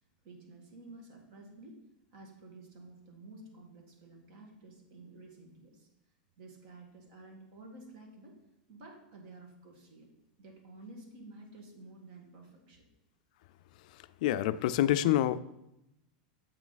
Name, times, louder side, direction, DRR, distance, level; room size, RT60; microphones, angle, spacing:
voice 1, 0.2-1.8 2.1-5.9 6.3-8.4 8.7-10.1 10.4-12.8, right 2 dB, 55° right, 1 dB, 1.8 m, -52 dB
voice 2, 14.2-15.4, left 12 dB, 60° left, 15 dB, 0.3 m, -26 dB
7.6 x 4.8 x 4.0 m, 0.87 s
supercardioid pair, 145°, 5 cm